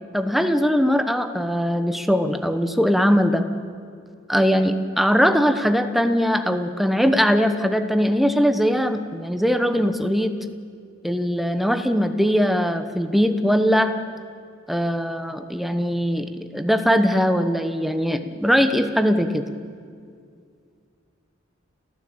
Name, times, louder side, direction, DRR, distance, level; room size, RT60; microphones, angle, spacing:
voice 1, 0.1-3.4 4.3-10.3 11.0-13.9 14.7-19.5, equal, ahead, 8 dB, 1.0 m, -21 dB
30.0 x 14.5 x 8.8 m, 2.3 s
head